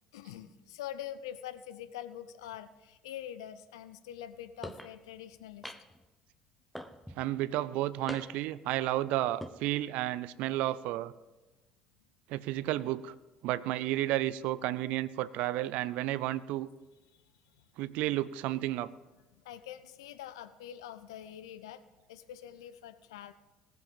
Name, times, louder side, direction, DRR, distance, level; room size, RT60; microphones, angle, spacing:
voice 1, 0.1-5.7 17.1-17.2 19.3-21.8 22.1-23.3, left 11 dB, 80° left, 13 dB, 0.6 m, -45 dB
sound 1, 4.6-4.9 5.6-6.0 6.7-7.2 8.1-8.6 9.2-9.6, equal, ahead, 0.9 m, -42 dB
voice 2, 7.2-11.1 12.3-13.1 13.4-16.7 17.8-18.9, right 15 dB, 65° right, 17 dB, 0.5 m, -32 dB
17.5 x 7.9 x 5.3 m, 1.1 s
hypercardioid pair, 60°, 3 cm